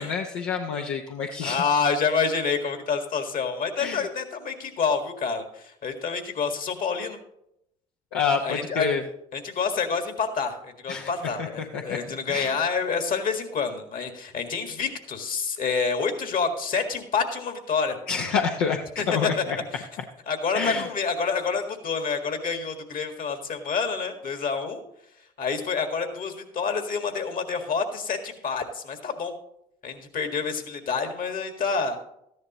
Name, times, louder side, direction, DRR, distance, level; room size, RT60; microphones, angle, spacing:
voice 1, 0.0-1.6 3.8-4.0 8.1-9.0 10.9-11.1 11.4-11.5 11.7-12.0 12.3-12.6 18.1-19.6 20.5-20.9, left 6 dB, 80° left, 1 dB, 0.9 m, -27 dB
voice 2, 1.5-7.2 8.4-8.9 9.3-18.0 19.0-19.1 19.4-19.5 19.7-19.8 20.3-24.8 25.4-29.3 29.8-32.0, left 5 dB, 55° left, 6 dB, 1.9 m, -28 dB
14.0 x 10.5 x 3.0 m, 0.78 s
hypercardioid pair, 55°, 17 cm